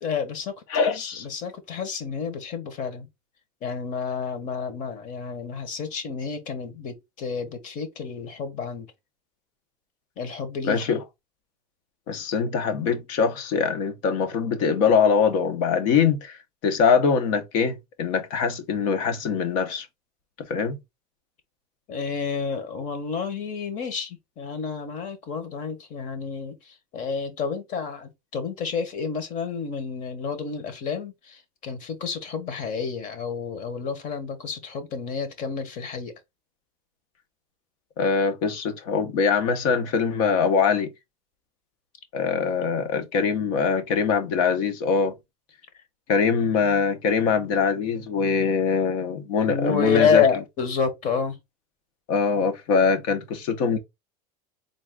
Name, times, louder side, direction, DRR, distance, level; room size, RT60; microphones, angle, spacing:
voice 1, 0.0-3.1 3.6-8.9 10.2-10.8 21.9-36.1 49.5-51.4, left 6 dB, 40° left, 1.3 m, -29 dB
voice 2, 0.7-1.2 10.6-11.0 12.1-16.4 16.6-19.9 20.5-20.8 38.0-40.9 42.1-45.1 46.1-50.2 52.1-53.8, left 5 dB, 65° left, 1.2 m, -23 dB
3.9 x 2.5 x 3.6 m
supercardioid pair, 145°, 19 cm